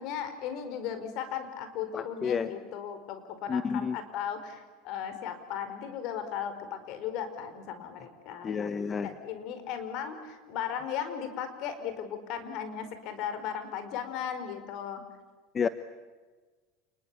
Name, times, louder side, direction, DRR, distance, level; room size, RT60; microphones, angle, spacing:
voice 1, 0.0-15.0, left 8 dB, 60° left, 9 dB, 4.8 m, -36 dB
voice 2, 1.9-2.5 3.5-4.0 8.4-9.1 15.5-15.7, left 6 dB, 30° left, 12 dB, 1.0 m, -30 dB
28.5 x 21.5 x 8.5 m, 1.4 s
hypercardioid pair, 95°, 0 cm